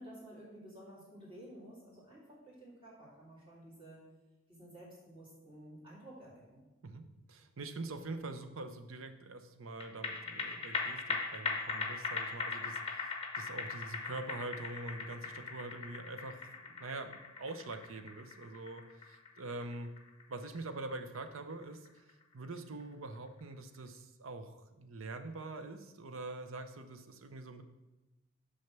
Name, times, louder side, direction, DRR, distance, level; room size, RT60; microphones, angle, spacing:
voice 1, 0.0-4.0 4.5-6.6, right 1 dB, 25° right, -6 dB, 2.4 m, -52 dB
voice 2, 7.3-19.9 20.3-22.0 22.3-27.6, right 2 dB, 70° right, 8 dB, 0.7 m, -44 dB
sound 1, 9.8-22.5 22.8-22.9, left 4 dB, 30° left, 0.7 m, -40 dB
6.3 x 5.7 x 5.9 m, 1.1 s
head